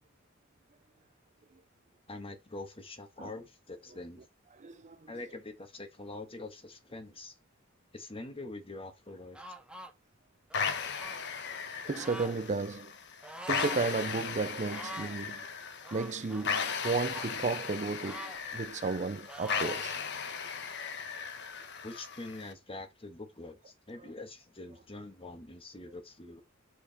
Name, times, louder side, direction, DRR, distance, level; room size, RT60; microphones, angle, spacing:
voice 1, 2.1-4.3 5.1-7.3 7.9-9.4 21.8-26.4, left 2 dB, 30° left, 1.5 m, -44 dB
voice 2, 4.6-5.0 11.5-11.6 11.8-12.9 13.5-15.5 15.9-20.0, right 4 dB, 35° right, 0.5 m, -33 dB
sound 1, 9.3-9.9 10.5-11.2 11.9-12.4 13.2-13.8 14.1-14.2 14.6-15.2 15.9-17.3 18.0-19.0 19.3-19.9, right 1 dB, 5° right, 1.0 m, -44 dB
sound 2, 10.5-22.5, left 6 dB, 60° left, 1.1 m, -37 dB
7.2 x 4.8 x 4.1 m
head